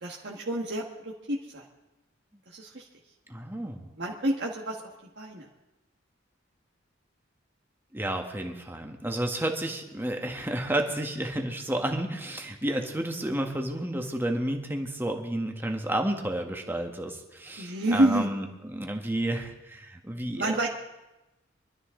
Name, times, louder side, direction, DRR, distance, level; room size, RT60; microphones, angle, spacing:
voice 1, 0.0-1.6 2.5-2.9 4.0-4.8 5.2-5.5 17.6-18.3 20.4-20.7, right 1 dB, 60° right, -2 dB, 1.7 m, -28 dB
voice 2, 3.3-3.8 7.9-20.7, right 1 dB, 10° right, 3 dB, 1.5 m, -31 dB
24.5 x 12.5 x 3.9 m, 1.0 s
head